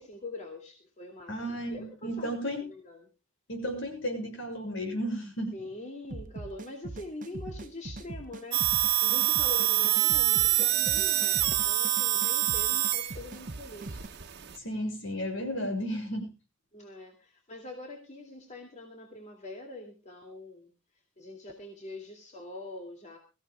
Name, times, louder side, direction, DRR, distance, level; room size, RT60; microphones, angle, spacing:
voice 1, 0.0-3.1 5.5-14.0 16.7-20.7 21.2-23.2, left 2 dB, 35° left, 3 dB, 2.5 m, -44 dB
voice 2, 1.3-2.6 3.5-5.5 14.6-16.3, equal, 65° left, 5 dB, 6.5 m, -33 dB
sound 1, 6.1-14.1, right 2 dB, 40° right, 0.9 m, -42 dB
sound 2, 8.5-14.6, right 15 dB, 55° right, 1.3 m, -26 dB
23.0 x 15.0 x 2.3 m, 0.30 s
head